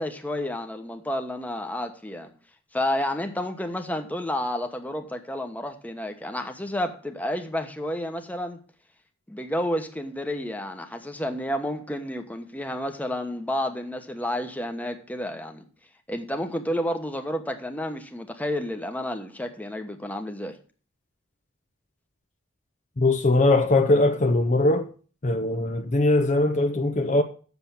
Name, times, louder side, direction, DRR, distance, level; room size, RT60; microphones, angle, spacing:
voice 1, 0.0-2.3 2.7-8.6 9.3-15.6 16.1-20.6, left 1 dB, 10° left, 1.1 m, -30 dB
voice 2, 23.0-24.9 25.2-27.2, left 2 dB, 35° left, 0.7 m, -21 dB
8.1 x 6.9 x 7.1 m
head